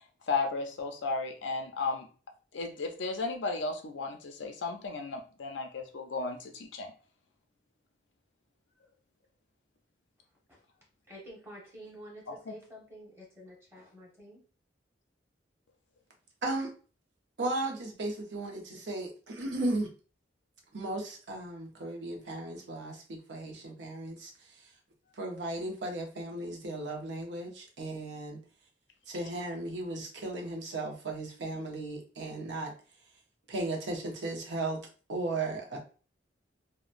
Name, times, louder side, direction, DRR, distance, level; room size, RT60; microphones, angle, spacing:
voice 1, 0.3-2.1 2.5-6.9 12.3-12.5, left 3 dB, 90° left, 4 dB, 0.6 m, -34 dB
voice 2, 11.1-14.4, equal, 15° right, -4 dB, 1.0 m, -49 dB
voice 3, 17.4-19.9 20.7-24.3 25.2-28.4 29.1-32.7 33.5-34.8 35.1-35.8, right 2 dB, 75° right, 1 dB, 0.7 m, -35 dB
2.8 x 2.1 x 2.4 m, 0.37 s
head